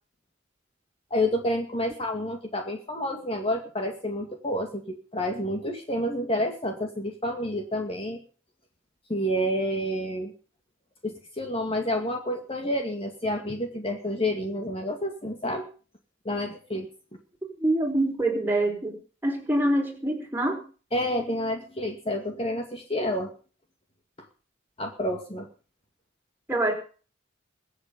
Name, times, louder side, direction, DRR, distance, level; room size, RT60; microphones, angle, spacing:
voice 1, 1.1-8.2 9.1-10.3 11.0-15.7 16.2-16.9 20.9-23.3 24.8-25.5, left 1 dB, 30° left, 3 dB, 2.2 m, -29 dB
voice 2, 17.6-19.0 19.2-20.6 26.5-26.7, right 1 dB, 10° right, 2 dB, 4.5 m, -25 dB
22.5 x 8.5 x 5.3 m, 0.38 s
head